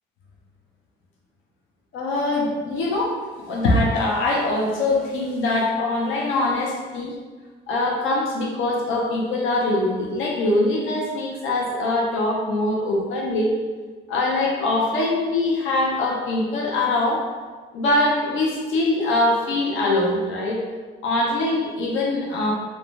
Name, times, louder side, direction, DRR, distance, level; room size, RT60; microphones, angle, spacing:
voice 1, 1.9-7.2 7.7-13.5 14.1-17.2 17.7-20.6 21.0-22.5, left 2 dB, 80° left, -2 dB, 0.6 m, -23 dB
2.5 x 2.1 x 3.1 m, 1.4 s
cardioid pair, 90°, 20 cm